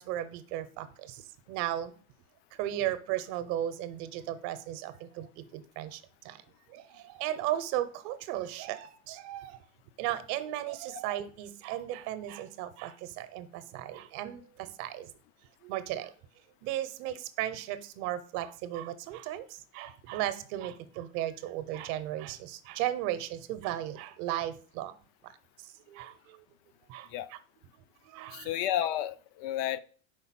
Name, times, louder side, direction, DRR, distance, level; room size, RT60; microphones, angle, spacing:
voice 1, 0.0-1.9 2.6-6.4 6.7-9.6 10.0-15.1 15.6-16.1 16.6-24.9 25.2-25.3 25.6-26.4 26.9-27.4 28.0-28.5, right 12 dB, 55° right, 13 dB, 0.8 m, -36 dB
voice 2, 28.3-29.8, left 12 dB, 55° left, 15 dB, 0.6 m, -31 dB
4.9 x 4.0 x 5.8 m, 0.42 s
supercardioid pair, 115°, 44 cm